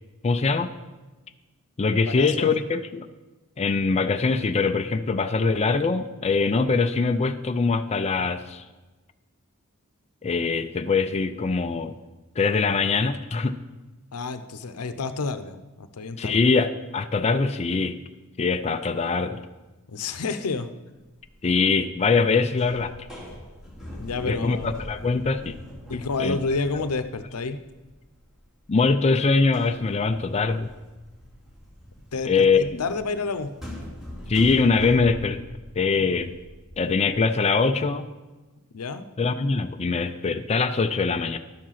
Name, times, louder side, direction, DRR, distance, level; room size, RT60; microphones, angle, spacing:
voice 1, 0.2-0.7 1.8-3.1 3.6-8.6 10.2-11.9 12.4-13.6 16.2-18.0 18.4-19.4 21.4-22.9 24.3-25.5 26.2-26.4 28.7-30.7 32.2-32.8 34.3-35.4 35.8-36.3 36.8-38.1 39.2-41.4, left 4 dB, 30° left, 7 dB, 0.4 m, -23 dB
voice 2, 2.0-2.6 14.1-16.4 19.9-20.7 23.9-24.8 25.9-27.6 32.1-33.5 38.7-39.1, left 4 dB, 90° left, 11 dB, 0.7 m, -30 dB
sound 1, 21.1-21.5 21.8-22.3 22.6-29.2 29.4-37.1, equal, ahead, 2.6 m, -42 dB
11.5 x 7.5 x 5.7 m, 1.2 s
head